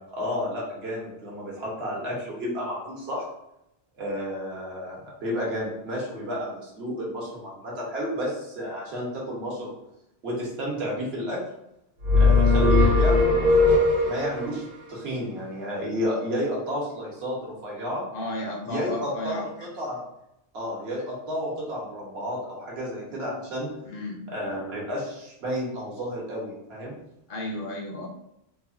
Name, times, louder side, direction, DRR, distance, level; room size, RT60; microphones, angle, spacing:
voice 1, 0.1-3.3 4.0-9.7 10.2-11.4 12.2-18.1 18.6-20.0 20.5-23.7 24.3-26.9, equal, 70° right, -3 dB, 1.1 m, -31 dB
sound 1, 12.0-14.5, left 3 dB, 50° right, 0.6 m, -19 dB
voice 2, 18.1-19.5 23.9-24.2 27.3-28.1, left 1 dB, 60° left, 0 dB, 0.7 m, -33 dB
3.1 x 2.1 x 2.4 m, 0.82 s
omnidirectional pair, 1.1 m